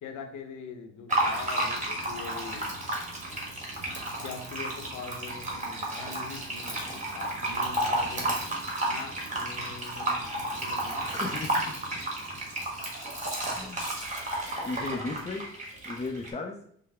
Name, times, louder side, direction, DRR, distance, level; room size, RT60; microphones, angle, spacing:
voice 1, 0.0-2.7 4.2-10.3 10.6-11.1 14.4-15.1, left 5 dB, 80° left, 6 dB, 0.7 m, -43 dB
Fill (with liquid), 1.1-16.3, right 1 dB, 25° right, 1.4 m, -32 dB
voice 2, 11.1-11.8 13.5-13.9 14.6-15.4 15.8-16.6, left 3 dB, 20° left, 4 dB, 0.5 m, -35 dB
5.3 x 2.0 x 3.5 m, 0.65 s
cardioid pair, 90°, 30 cm